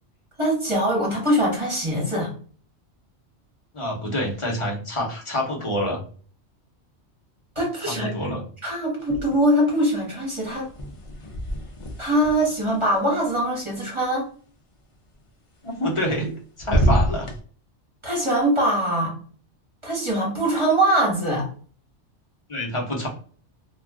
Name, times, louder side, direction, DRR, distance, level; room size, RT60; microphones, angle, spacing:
voice 1, 0.4-2.3 7.5-8.1 8.6-10.7 12.0-14.3 18.0-19.1 19.8-21.5, right 1 dB, 25° right, -4 dB, 1.1 m, -22 dB
voice 2, 3.7-6.0 7.8-8.4 15.6-16.3 16.6-17.3 22.5-23.1, left 1 dB, 30° left, -1 dB, 0.8 m, -27 dB
sound 1, 9.0-9.7 10.0-14.1 15.7-16.3 16.6-17.4, right 1 dB, 45° left, 0.4 m, -27 dB
2.4 x 2.3 x 3.4 m, 0.43 s
omnidirectional pair, 1.2 m